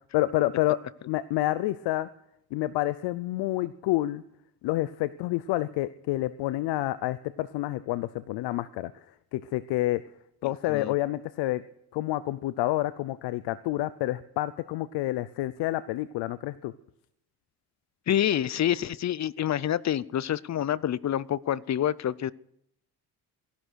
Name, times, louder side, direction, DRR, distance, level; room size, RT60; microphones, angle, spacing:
voice 1, 0.1-0.8 1.1-2.1 2.5-4.2 4.6-9.0 9.3-10.0 10.4-11.6 11.9-16.7, left 16 dB, 85° left, 15 dB, 0.6 m, -28 dB
voice 2, 18.1-22.3, left 11 dB, 45° left, 21 dB, 0.6 m, -27 dB
16.5 x 11.5 x 6.3 m, 0.77 s
cardioid pair, 80°, 39 cm